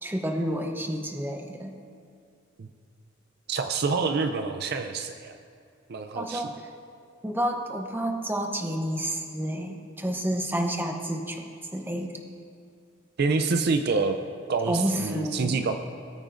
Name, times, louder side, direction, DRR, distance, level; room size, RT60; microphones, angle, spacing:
voice 1, 0.0-1.8 6.2-6.6 7.2-12.1 14.7-15.6, right 1 dB, 10° right, 3 dB, 0.8 m, -30 dB
voice 2, 3.5-5.4 5.9-6.5 13.2-14.2 14.5-15.7, right 4 dB, 50° right, 7 dB, 0.5 m, -27 dB
18.5 x 9.0 x 2.6 m, 2.4 s
head